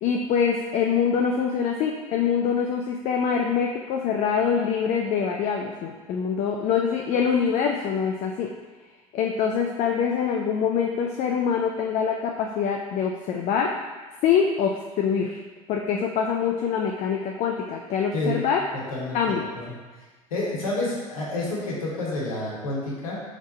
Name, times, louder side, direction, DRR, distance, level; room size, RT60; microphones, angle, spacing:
voice 1, 0.0-8.5 9.1-13.7 14.2-15.4 15.7-18.6 19.1-19.5, left 7 dB, 40° left, 1 dB, 0.4 m, -24 dB
voice 2, 18.9-19.7 20.3-23.2, left 2 dB, 75° left, -4 dB, 1.4 m, -29 dB
3.6 x 3.5 x 4.1 m, 1.3 s
figure-of-eight pair, 75°, 18 cm